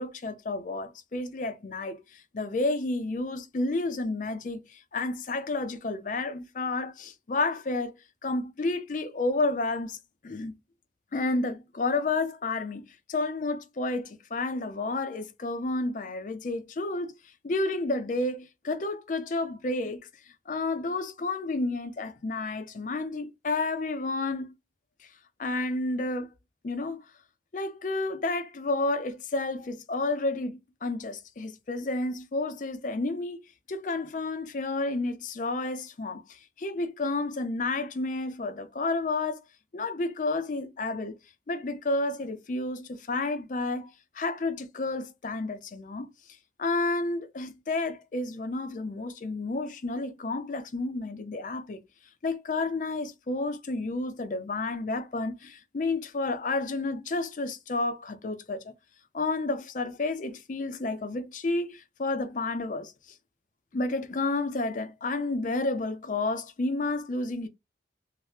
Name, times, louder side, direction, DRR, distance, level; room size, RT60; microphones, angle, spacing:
voice 1, 0.0-7.9 8.2-10.0 10.2-10.6 11.1-17.1 17.4-20.0 20.5-24.5 25.4-26.3 26.6-27.1 27.5-33.4 33.7-39.4 39.7-41.2 41.5-46.1 46.6-51.8 52.2-58.7 59.1-62.9 63.7-67.5, left 2 dB, 45° left, 0.4 m, -31 dB
2.7 x 2.1 x 3.2 m
head